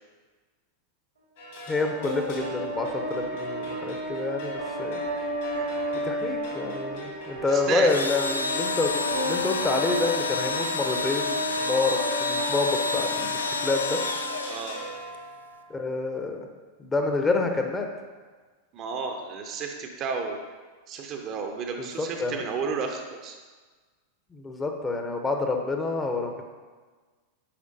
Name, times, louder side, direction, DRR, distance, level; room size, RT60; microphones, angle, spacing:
sound 1, 1.4-15.8, right 1 dB, 55° left, 1.7 m, -42 dB
voice 1, 1.7-5.0 5.9-14.0 15.7-16.5 16.8-17.9 22.0-22.4 24.3-26.4, left 3 dB, 15° left, 3 dB, 0.7 m, -28 dB
sound 2, 1.8-14.8, right 1 dB, 75° right, 1.4 m, -33 dB
voice 2, 7.5-7.9 14.5-14.8 18.7-20.4 20.9-23.4, right 5 dB, 35° right, 4 dB, 0.7 m, -32 dB
Engine / Drill, 7.8-15.2, left 4 dB, 75° left, 0.4 m, -30 dB
8.5 x 5.0 x 2.7 m, 1.4 s
figure-of-eight pair, 90°, 0 cm